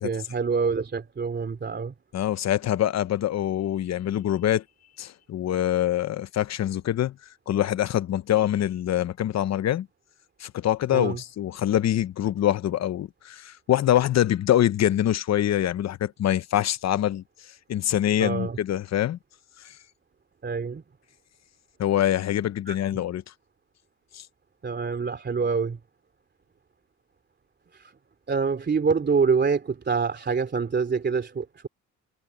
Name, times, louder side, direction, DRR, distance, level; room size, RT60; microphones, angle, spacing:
voice 1, 0.0-1.9 10.9-11.2 18.2-18.6 20.4-20.8 22.7-22.8 24.6-25.8 27.7-27.9 28.3-31.7, right 5 dB, 35° right, 3.0 m, -26 dB
voice 2, 2.1-4.6 5.0-7.1 7.5-9.9 10.4-17.2 17.7-19.2 21.8-23.2 24.1-24.2, left 12 dB, 60° left, 1.0 m, -24 dB
cardioid pair, 90°, 30 cm